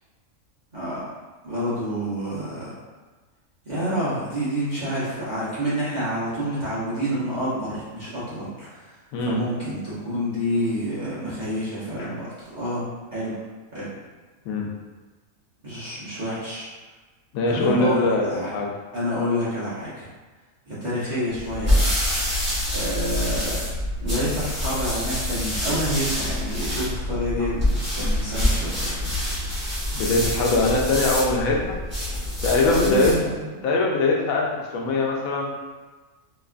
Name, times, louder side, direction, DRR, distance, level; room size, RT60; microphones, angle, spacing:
voice 1, 0.7-1.0 1.4-2.7 3.6-12.8 13.1-13.3 13.7-13.9 15.6-16.7 17.5-18.5 18.9-20.1 20.7-21.9 22.7-23.6 24.0-28.9 29.2-29.5 32.7-33.6, equal, 40° right, -10 dB, 0.7 m, -28 dB
voice 2, 17.3-18.7 29.9-31.8 32.4-33.1 33.6-35.5, left 2 dB, 85° left, -2 dB, 1.0 m, -22 dB
sound 1, 21.3-33.3, left 1 dB, 10° right, 0.9 m, -26 dB
2.9 x 2.3 x 2.4 m, 1.3 s
omnidirectional pair, 1.4 m